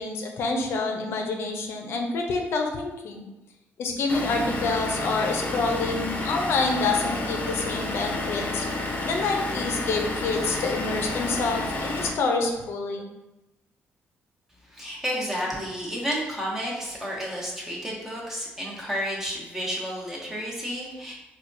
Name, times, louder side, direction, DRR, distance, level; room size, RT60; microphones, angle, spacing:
voice 1, 0.0-3.3 3.8-8.7 9.0-13.0, left 3 dB, 70° left, 3 dB, 0.5 m, -27 dB
Vehicle / Engine, 4.1-12.1, left 2 dB, 40° left, 0.7 m, -30 dB
voice 2, 14.7-21.1, equal, 10° right, -4 dB, 1.0 m, -31 dB
4.3 x 2.3 x 2.6 m, 0.98 s
cardioid pair, 100°, 4 cm